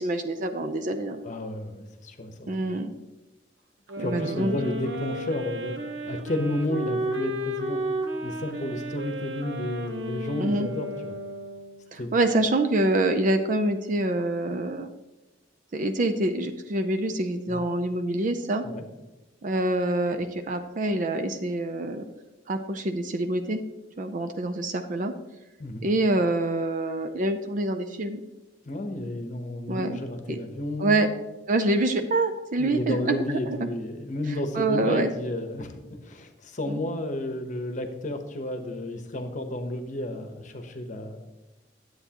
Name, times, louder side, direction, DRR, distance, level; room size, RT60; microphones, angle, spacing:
voice 1, 0.0-1.2 2.5-2.9 4.0-4.5 10.4-10.7 11.9-14.9 15.7-18.6 19.4-22.0 22.5-23.6 24.0-25.1 25.8-28.2 29.7-30.0 30.3-30.4 30.8-31.1 31.5-33.7 34.5-35.1 36.7-36.8, right 2 dB, 45° right, 7 dB, 0.5 m, -26 dB
voice 2, 1.2-2.7 4.0-7.8 8.2-11.2 12.0-12.1 17.5-17.6 18.6-18.8 25.6-25.9 28.6-31.1 32.6-41.3, left 1 dB, 45° left, 6 dB, 0.9 m, -32 dB
sound 1, 3.9-11.9, right 1 dB, 90° right, 1.0 m, -33 dB
10.5 x 7.9 x 2.9 m, 1.0 s
head